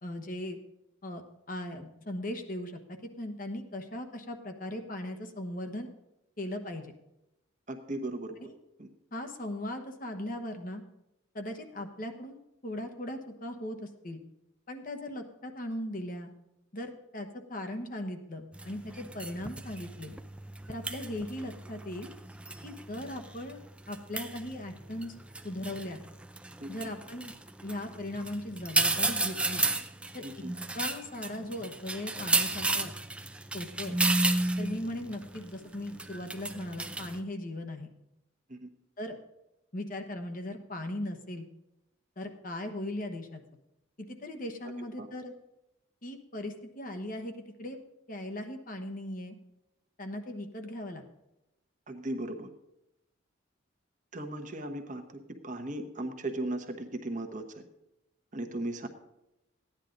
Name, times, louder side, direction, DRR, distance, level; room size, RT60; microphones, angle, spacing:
voice 1, 0.0-0.6 1.0-1.2 1.5-2.8 3.2-5.9 6.4-6.9 8.4-8.5 9.1-10.8 11.3-14.2 14.7-16.3 16.7-20.1 20.7-22.1 22.6-23.6 23.9-25.1 25.4-26.0 26.7-27.3 27.6-29.6 30.1-30.2 30.7-32.9 33.5-34.0 34.6-37.9 39.0-39.2 39.7-41.4 42.2-43.4 44.0-45.3 46.0-47.3 47.6-47.8 48.1-49.4 50.0-51.0, left 1 dB, 40° left, 5 dB, 1.1 m, -38 dB
voice 2, 7.7-8.5 8.8-8.9 26.6-26.7 30.2-30.5 38.5-38.7 45.0-45.1 51.9-52.5 54.1-57.6 58.3-58.9, right 1 dB, 40° right, 5 dB, 1.1 m, -37 dB
sound 1, 18.5-37.2, right 2 dB, 5° right, 0.5 m, -33 dB
15.0 x 10.0 x 3.9 m, 0.90 s
head